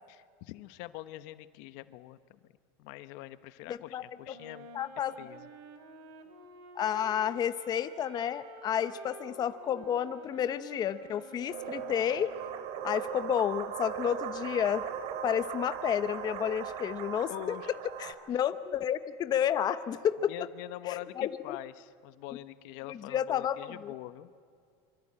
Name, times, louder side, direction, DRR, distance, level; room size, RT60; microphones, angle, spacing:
voice 1, 0.1-2.4 2.8-4.7 5.2-5.5 17.3-17.7 18.3-18.4 20.3-24.3, left 16 dB, 65° left, 14 dB, 1.1 m, -44 dB
voice 2, 3.7-4.3 4.7-5.1 6.7-12.3 12.8-14.8 15.2-17.6 18.0-20.3 20.9-21.6 22.9-23.6 23.8-23.9, left 9 dB, 30° left, 12 dB, 0.8 m, -31 dB
Wind instrument woodwind instrument, 4.2-12.6, right 3 dB, 75° right, 3.5 m, -50 dB
sound 1, 11.5-18.1, right 8 dB, 55° right, 2.7 m, -38 dB
26.0 x 24.5 x 8.8 m, 2.2 s
supercardioid pair, 135°, 13 cm